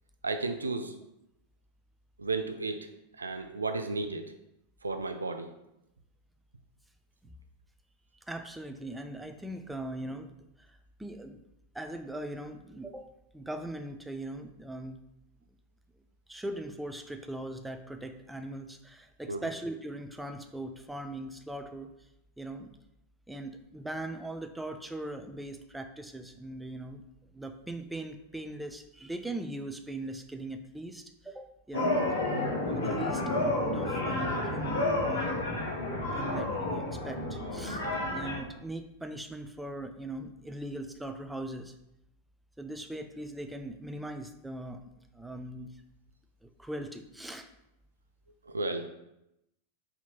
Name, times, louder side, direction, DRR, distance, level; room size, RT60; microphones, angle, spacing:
voice 1, 0.2-0.9 2.2-2.9 3.2-4.3 4.8-5.5 19.3-19.4 48.4-48.9, right 3 dB, 75° right, 7 dB, 0.3 m, -33 dB
voice 2, 8.1-10.3 10.6-11.4 11.7-15.0 16.3-21.9 22.4-22.8 23.3-27.0 27.3-32.0 32.7-35.5 36.1-41.7 42.6-45.7 46.4-47.5, right 1 dB, 5° right, 6 dB, 0.4 m, -40 dB
sound 1, 31.7-38.4, left 2 dB, 65° left, 1.1 m, -30 dB
4.3 x 2.8 x 4.0 m, 0.86 s
figure-of-eight pair, 90°, 0 cm